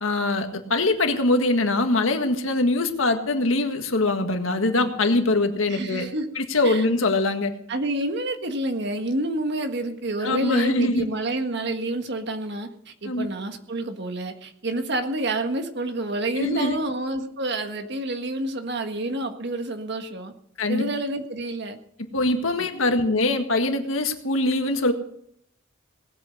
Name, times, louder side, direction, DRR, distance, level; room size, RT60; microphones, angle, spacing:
voice 1, 0.0-6.1 6.4-7.5 10.2-11.0 13.0-13.3 16.4-16.7 20.6-20.8 22.1-24.9, left 2 dB, 85° left, 6 dB, 1.7 m, -23 dB
voice 2, 5.7-6.3 6.6-6.8 7.7-20.3 20.7-21.8 22.6-22.9, right 2 dB, 60° right, 6 dB, 1.6 m, -28 dB
18.5 x 8.4 x 6.7 m, 0.70 s
head